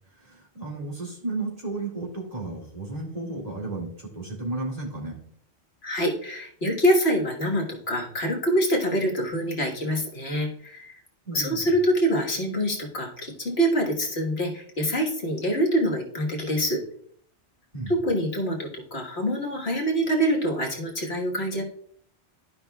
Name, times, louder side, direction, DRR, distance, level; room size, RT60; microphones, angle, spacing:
voice 1, 0.1-5.2 11.3-11.6 17.7-17.9, right 2 dB, 35° right, -5 dB, 2.2 m, -33 dB
voice 2, 5.8-11.0 11.3-16.8 17.9-21.6, equal, 65° left, 0 dB, 1.7 m, -25 dB
13.0 x 5.3 x 2.3 m, 0.62 s
omnidirectional pair, 1.1 m